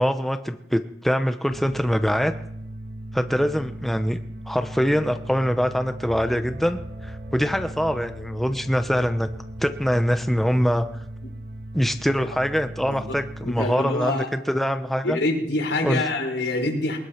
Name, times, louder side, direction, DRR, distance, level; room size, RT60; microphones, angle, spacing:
voice 1, 0.0-2.3 3.1-4.2 4.5-9.3 9.6-10.9 11.7-15.2 15.8-16.0, equal, ahead, 7 dB, 0.9 m, -23 dB
sound 1, 1.5-13.7, right 1 dB, 60° right, 1.2 m, -38 dB
sound 2, 6.0-12.5, equal, 90° right, 6.1 m, -45 dB
voice 2, 13.4-14.3 15.0-17.0, left 2 dB, 80° left, 3 dB, 4.9 m, -25 dB
22.5 x 20.5 x 5.9 m, 0.79 s
head